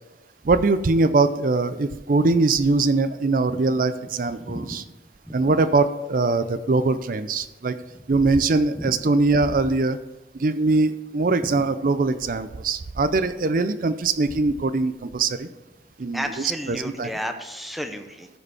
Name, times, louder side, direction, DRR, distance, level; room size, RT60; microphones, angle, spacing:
voice 1, 0.4-4.8 5.3-7.8 8.1-10.0 10.3-15.5 16.0-17.1, right 3 dB, 50° right, 13 dB, 0.5 m, -22 dB
voice 2, 16.1-18.3, equal, ahead, 5 dB, 0.8 m, -32 dB
14.5 x 5.0 x 4.8 m, 1.1 s
head